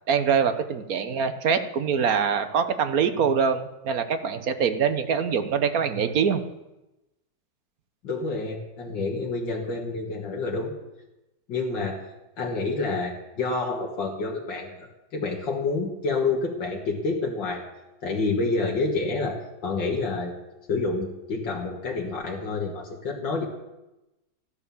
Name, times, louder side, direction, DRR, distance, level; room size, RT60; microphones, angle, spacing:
voice 1, 0.1-6.4, right 6 dB, 55° right, 10 dB, 1.4 m, -24 dB
voice 2, 8.0-10.7 11.5-12.0 12.4-14.9 15.1-17.6 18.0-20.3 20.7-23.5, left 3 dB, 85° left, -2 dB, 2.5 m, -28 dB
14.0 x 11.5 x 7.2 m, 0.97 s
omnidirectional pair, 1.9 m